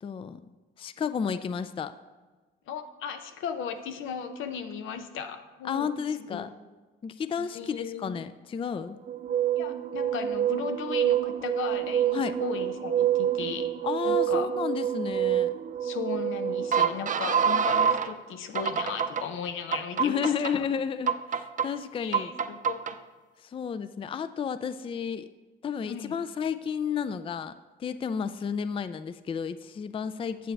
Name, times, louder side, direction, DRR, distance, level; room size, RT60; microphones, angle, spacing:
voice 1, 0.0-0.4 0.8-1.9 5.6-6.5 7.0-9.0 12.1-12.4 13.8-15.5 20.0-22.3 23.4-25.3 25.6-27.5 27.8-30.5, left 7 dB, 25° left, 13 dB, 0.3 m, -32 dB
voice 2, 2.7-5.9 6.2-6.5 7.4-8.2 9.6-13.8 14.0-14.5 15.8-20.6 22.0-22.8 25.8-26.2, left 7 dB, 85° left, 8 dB, 0.8 m, -36 dB
sound 1, 9.1-18.1 18.5-19.2 19.7-20.5 21.1-21.7 22.1-22.9, right 9 dB, 40° right, 0.6 m, -27 dB
9.2 x 7.5 x 3.3 m, 1.3 s
cardioid pair, 90°, 20 cm